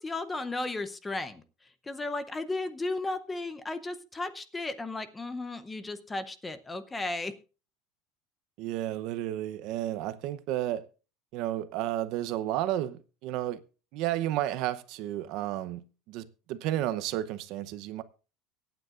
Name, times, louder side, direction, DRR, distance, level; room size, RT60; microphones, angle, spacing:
voice 1, 0.0-1.4 1.9-7.3, left 2 dB, 10° left, 0.7 m, -34 dB
voice 2, 8.6-10.9 11.3-13.6 13.9-18.0, right 13 dB, 50° right, 0.7 m, -32 dB
23.5 x 9.1 x 2.5 m
cardioid pair, 165°, 0 cm